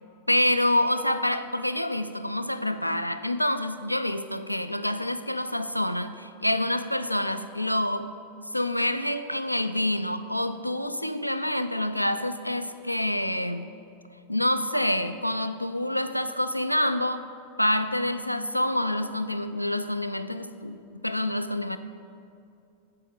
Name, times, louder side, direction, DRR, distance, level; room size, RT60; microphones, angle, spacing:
voice 1, 0.3-8.1 8.5-13.8 14.3-17.2 17.6-21.8, left 1 dB, 90° left, 10 dB, 0.4 m, -27 dB
14.5 x 4.9 x 5.3 m, 2.6 s
figure-of-eight pair, 90°, 0 cm